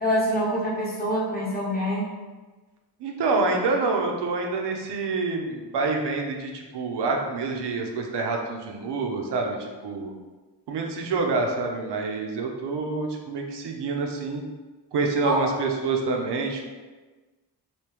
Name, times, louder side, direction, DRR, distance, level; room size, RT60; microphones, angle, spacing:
voice 1, 0.0-2.1 15.2-15.4, equal, 20° left, -6 dB, 0.8 m, -25 dB
voice 2, 3.0-10.1 10.7-14.4 14.9-16.7, right 3 dB, 75° right, 2 dB, 0.6 m, -27 dB
3.5 x 2.7 x 2.9 m, 1.3 s
wide cardioid pair, 160°, 41 cm